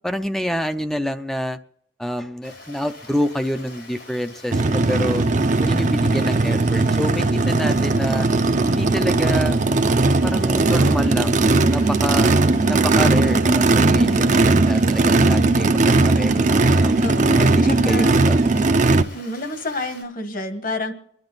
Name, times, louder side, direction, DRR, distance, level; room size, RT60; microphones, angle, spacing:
voice 1, 0.0-1.6 2.0-5.2 5.6-8.3 8.7-9.6 10.2-12.3 12.7-17.0 17.4-18.4, equal, ahead, 8 dB, 0.5 m, -27 dB
Stream, 2.4-20.0, left 2 dB, 85° left, 5.4 m, -44 dB
Race car auto racing / Idling / Accelerating revving vroom, 4.5-19.0, right 3 dB, 45° right, 0.6 m, -18 dB
voice 2, 16.9-18.2 19.1-20.9, left 2 dB, 50° left, 8 dB, 1.4 m, -29 dB
28.5 x 10.5 x 3.9 m, 0.73 s
head